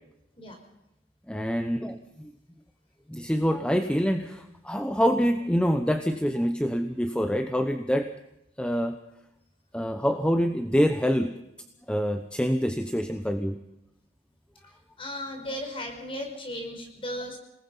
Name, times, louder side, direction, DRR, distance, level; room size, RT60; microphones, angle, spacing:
voice 1, 1.3-2.3 3.1-8.1 8.6-9.0 9.7-11.3 11.9-13.6, equal, 5° left, 7 dB, 0.9 m, -26 dB
voice 2, 15.0-17.4, left 1 dB, 30° left, 3 dB, 5.2 m, -35 dB
27.5 x 19.0 x 5.7 m, 0.87 s
head